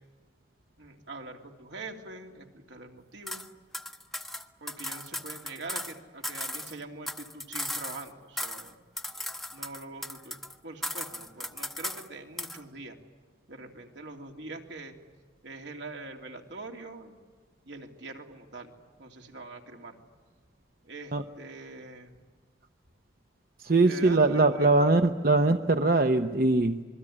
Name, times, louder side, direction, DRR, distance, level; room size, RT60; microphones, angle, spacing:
voice 1, 0.8-3.4 4.6-8.8 9.5-10.4 10.6-13.0 13.5-14.9 15.4-17.2 17.6-18.7 19.0-20.0 20.8-22.1 23.8-24.9, right 2 dB, 75° right, 2 dB, 2.9 m, -43 dB
sound 1, 3.3-3.5 3.7-6.0 6.2-8.1 8.4-8.7 9.0-10.5 10.8-12.1 12.4-12.6, left 1 dB, ahead, 0.8 m, -36 dB
voice 2, 23.6-26.8, right 2 dB, 50° right, 7 dB, 0.8 m, -22 dB
27.0 x 22.0 x 10.0 m, 1.4 s
head